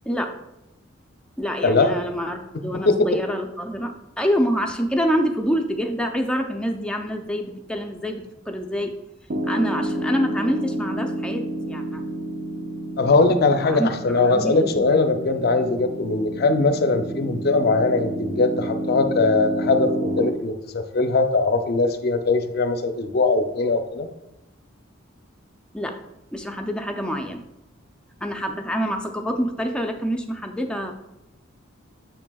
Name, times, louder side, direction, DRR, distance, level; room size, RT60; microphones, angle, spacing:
voice 1, 0.0-0.4 1.4-8.9 9.4-12.0 13.7-14.9 15.5-15.6 25.7-26.0 26.3-27.4 28.2-30.9, equal, 5° left, 3 dB, 0.5 m, -26 dB
voice 2, 1.6-1.9 2.8-3.1 13.0-24.1, left 3 dB, 50° left, 7 dB, 0.5 m, -20 dB
Piano, 9.3-20.3, right 1 dB, 45° right, 0.6 m, -30 dB
6.9 x 6.1 x 2.3 m, 0.89 s
head